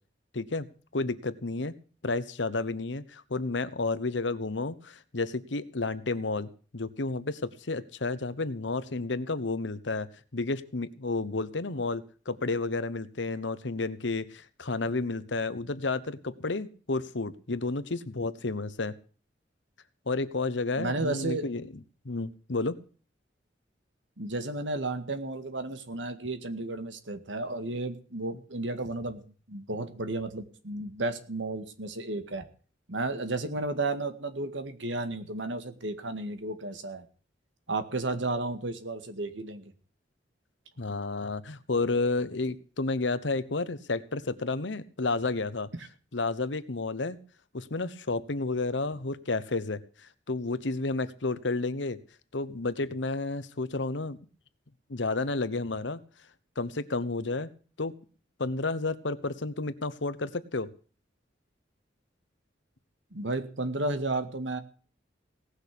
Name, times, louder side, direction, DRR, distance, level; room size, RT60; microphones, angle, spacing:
voice 1, 0.3-0.7 0.9-1.7 2.0-10.1 10.3-18.9 20.1-21.7 22.0-22.8 40.8-45.7 46.1-47.2 47.5-52.0 52.3-54.2 54.9-56.0 56.6-57.5 57.8-57.9 58.4-60.7, left 3 dB, 75° left, 14 dB, 1.1 m, -31 dB
voice 2, 20.8-21.4 24.2-29.2 29.5-32.5 32.9-37.0 37.7-39.7 63.1-64.6, right 2 dB, 80° right, 8 dB, 1.9 m, -33 dB
18.0 x 6.4 x 8.3 m, 0.40 s
head